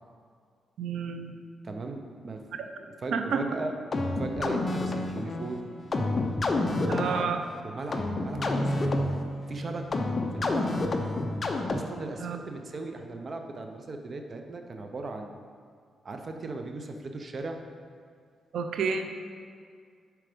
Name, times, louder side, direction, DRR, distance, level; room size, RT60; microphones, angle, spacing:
voice 1, 0.8-1.3 3.1-3.4 6.9-7.4 12.2-12.4 18.5-19.0, right 5 dB, 80° right, 7 dB, 0.6 m, -29 dB
voice 2, 1.6-2.4 2.8-3.7 4.2-5.7 6.9-7.3 7.6-9.0 9.5-9.9 10.3-10.8 11.7-15.3 16.0-17.6, right 3 dB, 40° right, 5 dB, 0.7 m, -37 dB
sound 1, 3.9-12.1, left 2 dB, 35° left, 0.7 m, -29 dB
7.7 x 4.8 x 5.1 m, 2.1 s
cardioid pair, 115°, 0 cm